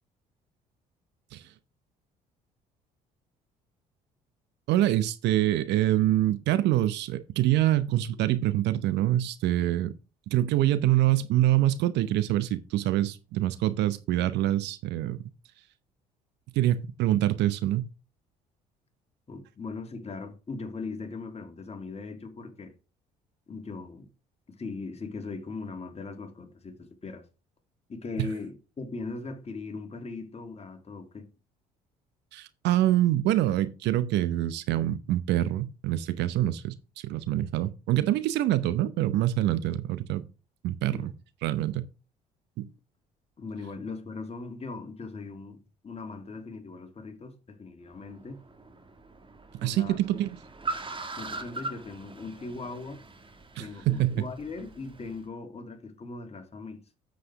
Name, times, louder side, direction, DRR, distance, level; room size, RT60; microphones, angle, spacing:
voice 1, 4.7-9.9 10.3-15.2 16.5-17.9 28.2-28.3 32.3-36.8 37.0-40.2 40.6-41.1 41.4-41.9 42.6-42.7 49.6-50.4 53.6-54.2, right 13 dB, 65° right, 0.8 m, -25 dB
voice 2, 19.3-22.7 23.5-24.1 24.6-27.3 27.9-31.3 40.9-41.1 43.4-48.4 49.6-50.0 51.2-53.0 53.6-57.0, left 3 dB, 35° left, 2.6 m, -39 dB
Car, 47.8-55.2, right 3 dB, 25° right, 1.9 m, -41 dB
8.2 x 7.6 x 3.5 m
hypercardioid pair, 55°, 19 cm